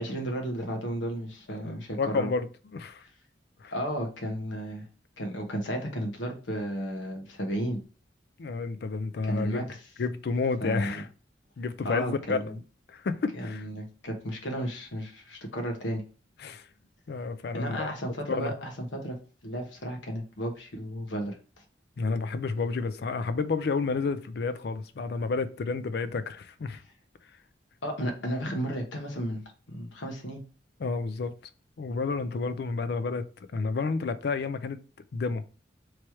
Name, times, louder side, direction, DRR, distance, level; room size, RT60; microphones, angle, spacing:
voice 1, 0.0-2.3 3.7-4.9 5.2-7.8 9.2-9.8 10.6-11.0 11.8-12.6 13.3-16.0 17.5-19.2 19.4-21.4 27.8-29.4 29.7-30.4, equal, 85° left, 1.0 m, -33 dB
voice 2, 1.6-2.5 2.7-3.0 3.6-3.7 8.4-9.7 10.0-11.1 11.6-12.4 12.9-13.6 16.4-16.7 17.1-17.9 18.3-18.6 22.0-26.8 30.8-31.3 31.8-33.2 33.5-34.8 35.1-35.4, left 4 dB, 60° left, 0.4 m, -30 dB
3.1 x 3.0 x 4.6 m
head